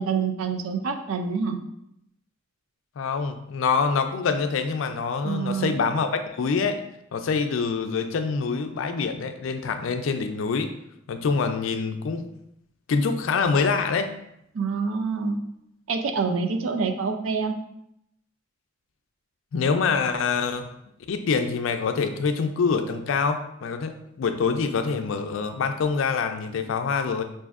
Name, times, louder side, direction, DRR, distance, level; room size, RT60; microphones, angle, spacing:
voice 1, 0.0-1.6 5.2-5.8 14.5-15.4 15.9-17.5, right 5 dB, 85° right, 5 dB, 0.4 m, -26 dB
voice 2, 3.0-6.8 7.1-10.7 11.1-12.2 12.9-14.1 19.5-20.7 21.1-27.2, left 5 dB, 75° left, 8 dB, 0.4 m, -25 dB
5.0 x 2.6 x 2.4 m, 0.77 s
head